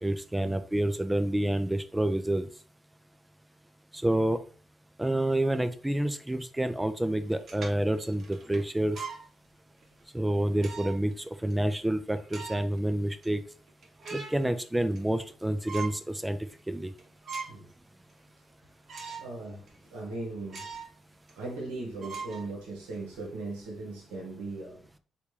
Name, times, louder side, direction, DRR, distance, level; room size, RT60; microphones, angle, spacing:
voice 1, 0.0-2.5 4.0-4.4 5.0-9.0 10.1-11.1 11.4-13.4 14.1-16.4 16.7-16.9, right 1 dB, 10° right, 0.4 m, -28 dB
sound 1, 7.2-9.3 9.8-9.9 10.6-11.1 11.5-11.6 12.2-12.8 13.2-13.3 13.7-14.4 14.8-15.3 15.7-16.0 16.5-16.6 17.0-17.7 18.1-18.2 18.9-19.3 19.7-19.8 20.5-21.0 21.3-21.4 22.0-23.0, right 5 dB, 55° right, 0.8 m, -41 dB
voice 2, 19.2-20.7 21.4-24.8, right 2 dB, 80° right, 0.9 m, -38 dB
3.5 x 2.4 x 3.1 m
hypercardioid pair, 45°, 0 cm